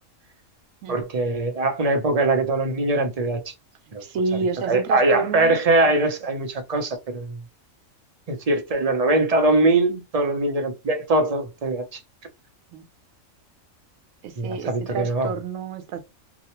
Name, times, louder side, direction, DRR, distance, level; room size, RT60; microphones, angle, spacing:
voice 1, 0.9-3.5 3.9-4.0 4.7-7.4 8.3-12.0 14.4-15.3, right 2 dB, 45° right, 0.5 m, -22 dB
voice 2, 4.0-5.6 12.7-12.8 14.2-16.0, right 5 dB, 75° right, 1.0 m, -29 dB
2.8 x 2.0 x 2.9 m
omnidirectional pair, 1.4 m